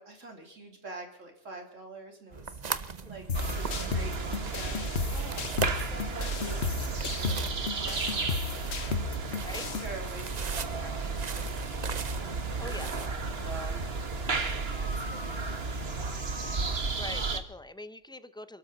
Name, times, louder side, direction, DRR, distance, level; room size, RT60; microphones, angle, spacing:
voice 1, 0.0-12.8 13.3-16.1, right 2 dB, 85° right, 2 dB, 3.6 m, -47 dB
sound 1, 2.3-15.5, right 5 dB, 40° right, 0.9 m, -41 dB
voice 2, 2.7-3.1 9.4-9.8 12.6-12.9 16.9-18.6, left 2 dB, 5° left, 13 dB, 0.5 m, -43 dB
sound 2, 3.3-9.9, left 6 dB, 60° left, 1.4 m, -34 dB
sound 3, 3.3-17.4, right 4 dB, 55° right, 1.7 m, -33 dB
28.0 x 12.5 x 4.0 m, 0.73 s
omnidirectional pair, 1.3 m